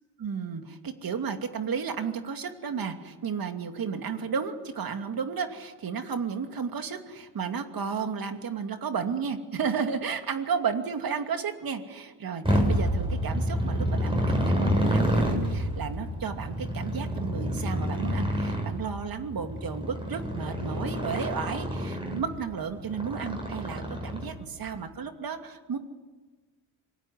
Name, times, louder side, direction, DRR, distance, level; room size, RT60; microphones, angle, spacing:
voice 1, 0.2-25.8, right 6 dB, 50° right, 6 dB, 2.7 m, -33 dB
Motorcycle, 12.4-24.6, equal, 10° right, 7.7 m, -28 dB
26.0 x 19.0 x 9.8 m, 1.3 s
cardioid pair, 85°, 45 cm